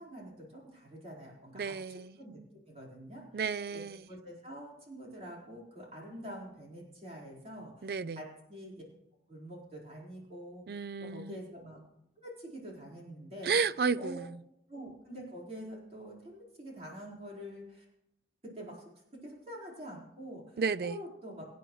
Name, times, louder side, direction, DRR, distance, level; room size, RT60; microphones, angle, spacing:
voice 1, 0.0-1.7 2.2-2.4 2.7-3.4 3.7-3.8 4.1-8.8 9.3-11.8 12.2-13.5 14.0-14.2 14.7-17.8 18.4-18.8 19.2-21.5, equal, 35° right, 4.4 m, -46 dB
voice 2, 1.5-2.2 3.3-4.0 7.8-8.2 10.7-11.4 13.4-14.3 20.6-21.0, right 5 dB, 60° right, 0.4 m, -32 dB
24.5 x 9.4 x 3.1 m
head